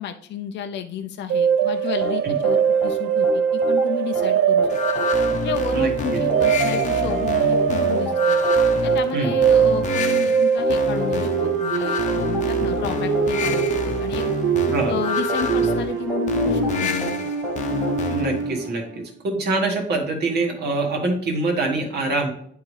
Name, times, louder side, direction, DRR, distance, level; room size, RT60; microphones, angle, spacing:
voice 1, 0.0-4.7 4.9-5.0 5.4-8.4 8.8-14.3 14.9-17.3 19.4-19.5, left 8 dB, 60° left, 7 dB, 0.5 m, -32 dB
sound 1, 1.3-18.7, right 7 dB, 75° right, 0.5 m, -22 dB
sound 2, 2.0-18.9, equal, 5° left, 1.9 m, -32 dB
sound 3, 4.7-18.5, left 5 dB, 35° left, 0.9 m, -28 dB
voice 2, 5.7-6.2 9.1-9.3 14.7-15.0 18.1-18.8 19.2-22.3, right 3 dB, 55° right, 1 dB, 1.9 m, -24 dB
10.5 x 3.7 x 3.2 m, 0.65 s
cardioid pair, 145°, 21 cm